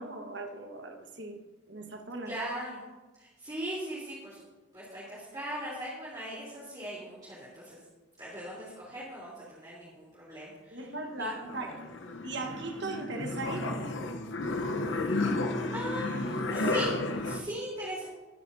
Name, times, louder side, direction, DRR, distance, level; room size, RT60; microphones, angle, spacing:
voice 1, 0.0-1.4 1.7-2.3 10.7-11.8 12.2-13.9, right 2 dB, 55° right, 4 dB, 1.5 m, -38 dB
voice 2, 2.2-2.8 3.2-4.4 4.7-7.8 8.2-11.3 11.6-11.7 15.0-15.2 15.7-16.9 17.2-18.1, equal, 20° right, -8 dB, 3.7 m, -39 dB
sound 1, 10.9-17.4, left 2 dB, 65° left, 1.0 m, -32 dB
22.5 x 10.0 x 2.8 m, 1.2 s
head